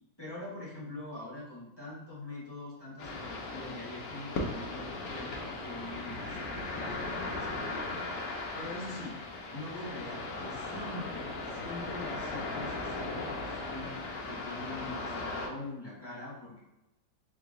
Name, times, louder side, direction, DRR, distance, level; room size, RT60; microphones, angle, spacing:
voice 1, 0.2-4.8 5.1-8.2 8.5-9.2 9.5-13.9 14.3-16.6, left 2 dB, 15° left, -8 dB, 1.2 m, -43 dB
sound 1, 3.0-15.5, left 2 dB, 65° left, 0.8 m, -37 dB
3.6 x 2.9 x 3.7 m, 0.96 s
omnidirectional pair, 2.1 m